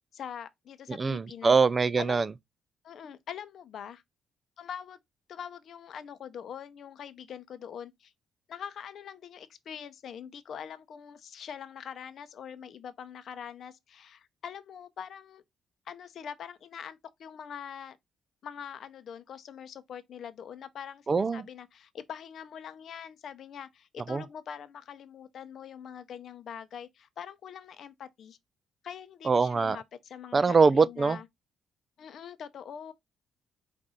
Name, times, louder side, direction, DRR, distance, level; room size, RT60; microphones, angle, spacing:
voice 1, 0.1-1.6 2.0-2.3 2.8-4.0 4.6-5.0 5.3-8.1 8.5-15.4 15.9-18.0 18.4-28.4 28.8-31.3 32.0-32.9, left 8 dB, 65° left, 0.7 m, -43 dB
voice 2, 0.9-2.3 21.1-21.4 24.1-24.2 29.2-29.8 30.3-31.2, right 4 dB, 35° right, 0.4 m, -23 dB
4.9 x 2.6 x 4.1 m
cardioid pair, 90°, 0 cm